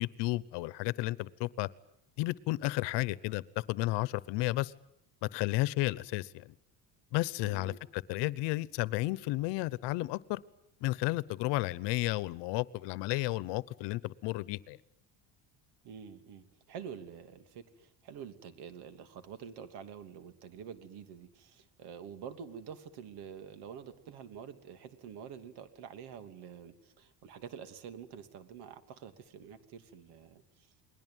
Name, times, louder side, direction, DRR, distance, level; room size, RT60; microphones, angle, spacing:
voice 1, 0.0-1.7 2.2-3.4 3.7-4.7 5.2-6.5 7.1-10.4 10.8-14.8, left 19 dB, 80° left, 1.1 m, -32 dB
voice 2, 7.4-7.8 15.8-30.7, right 7 dB, 70° right, 3.0 m, -47 dB
29.0 x 21.0 x 9.3 m
cardioid pair, 130°, 41 cm